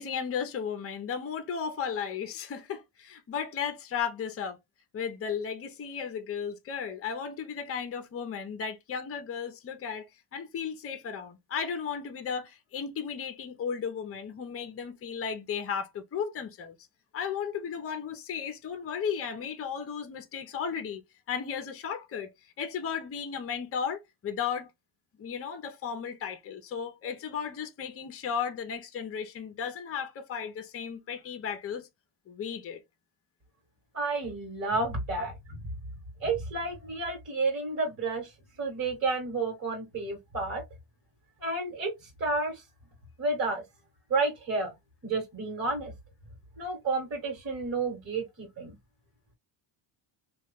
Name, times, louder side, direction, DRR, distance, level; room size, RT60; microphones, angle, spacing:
voice 1, 0.0-4.6 4.9-10.1 10.3-16.8 17.1-21.0 21.3-22.3 22.6-24.7 25.2-31.9 32.3-32.8 35.1-35.3, left 7 dB, 30° left, 0.6 m, -35 dB
voice 2, 33.9-35.3 36.2-38.3 38.6-40.6 41.4-41.9 42.2-42.6 43.2-43.6 44.1-44.7 45.0-45.9 46.6-48.7, right 3 dB, 40° right, 1.4 m, -30 dB
3.0 x 2.4 x 3.4 m
cardioid pair, 135°, 50 cm